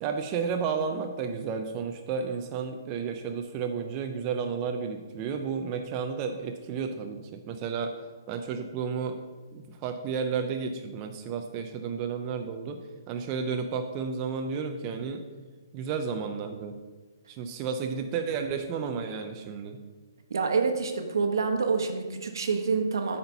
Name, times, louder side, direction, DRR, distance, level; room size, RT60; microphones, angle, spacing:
voice 1, 0.0-7.9 8.3-9.2 9.5-12.8 13.1-15.2 15.7-16.7 17.3-19.8, right 6 dB, 25° right, 5 dB, 0.4 m, -32 dB
voice 2, 20.3-23.2, right 5 dB, 80° right, 5 dB, 1.1 m, -27 dB
7.9 x 4.3 x 5.5 m, 1.3 s
hypercardioid pair, 160°, 2 cm